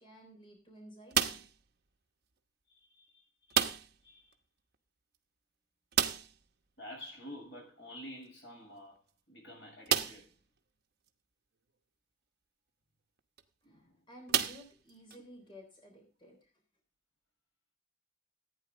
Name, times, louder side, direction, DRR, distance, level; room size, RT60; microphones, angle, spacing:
voice 1, 0.0-1.4 13.6-13.8 14.1-16.5, equal, 30° left, 3.6 m, -54 dB
sound 1, 1.1-1.7 3.5-4.1 4.3-4.4 4.7-4.8 5.9-6.5 8.2-8.3 8.9-9.0 9.8-10.4 11.1-11.2 13.2-13.4 14.3-15.2, right 8 dB, 60° right, 1.0 m, -31 dB
voice 2, 2.7-3.7 4.0-4.3 6.8-10.3 13.6-14.0 14.5-14.6, left 1 dB, 80° left, 7.4 m, -50 dB
15.0 x 9.2 x 3.8 m
head